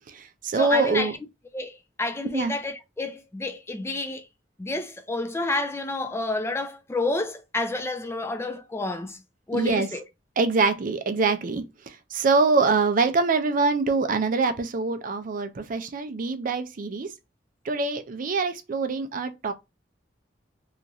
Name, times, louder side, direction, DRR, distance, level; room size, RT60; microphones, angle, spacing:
voice 1, 0.1-1.1 2.3-2.5 9.5-9.9 10.4-17.1 17.6-19.5, right 4 dB, 50° right, 0.4 m, -24 dB
voice 2, 0.6-1.1 1.5-4.2 4.6-9.2 9.5-10.0, left 2 dB, 15° left, 0.3 m, -29 dB
2.9 x 2.4 x 2.6 m
head